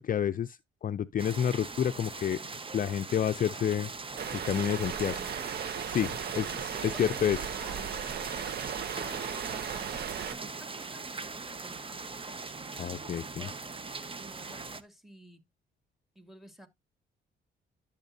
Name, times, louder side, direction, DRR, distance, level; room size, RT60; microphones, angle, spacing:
voice 1, 0.0-2.4 2.7-3.9 4.3-5.1 5.9-6.5 6.8-7.4 12.8-13.5, left 9 dB, 45° left, 0.5 m, -29 dB
sound 1, 1.2-14.8, right 4 dB, 25° right, 1.1 m, -40 dB
sound 2, 4.2-10.3, right 8 dB, 55° right, 0.7 m, -37 dB
voice 2, 4.9-5.5 6.3-8.2 8.7-12.1 12.7-13.7 14.0-15.5 16.1-16.7, equal, ahead, 2.4 m, -53 dB
11.5 x 7.2 x 2.7 m
cardioid pair, 90°, 20 cm